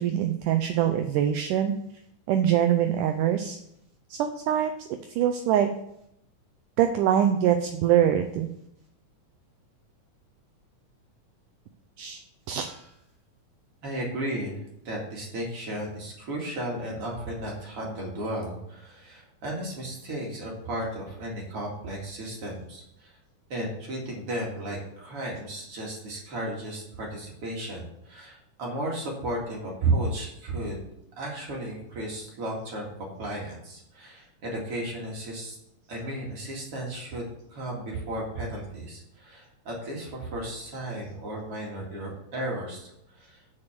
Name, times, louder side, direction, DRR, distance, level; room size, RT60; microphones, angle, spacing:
voice 1, 0.0-1.7 2.3-3.6 4.1-5.7 6.8-8.5 12.0-12.2 12.5-12.9, right 10 dB, 80° right, 7 dB, 1.8 m, -24 dB
voice 2, 13.8-14.6 14.8-23.2 23.5-30.8 31.2-35.6 35.9-43.4, right 1 dB, 45° right, -2 dB, 2.7 m, -34 dB
7.1 x 6.8 x 6.9 m, 0.76 s
omnidirectional pair, 4.3 m